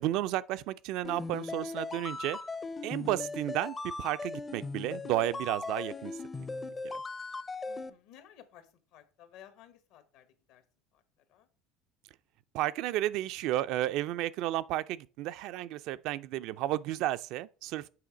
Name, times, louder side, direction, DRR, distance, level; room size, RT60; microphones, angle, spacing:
voice 1, 0.0-2.4 2.8-6.1 6.9-7.0 12.5-17.9, right 14 dB, 65° right, 0.4 m, -32 dB
sound 1, 1.0-7.9, left 3 dB, 20° left, 0.5 m, -38 dB
voice 2, 7.7-10.6 10.9-11.0 11.3-11.5, left 10 dB, 70° left, 1.2 m, -56 dB
7.7 x 3.3 x 5.0 m
cardioid pair, 125°, 0 cm